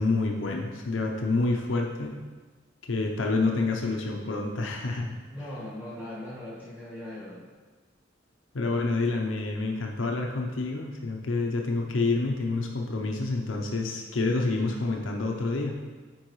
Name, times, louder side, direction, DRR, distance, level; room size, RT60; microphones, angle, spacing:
voice 1, 0.0-2.2 2.9-5.2 8.5-15.8, left 3 dB, 90° left, 1 dB, 0.7 m, -28 dB
voice 2, 5.0-7.5, left 1 dB, 10° right, -9 dB, 1.5 m, -40 dB
10.0 x 4.6 x 3.1 m, 1.4 s
head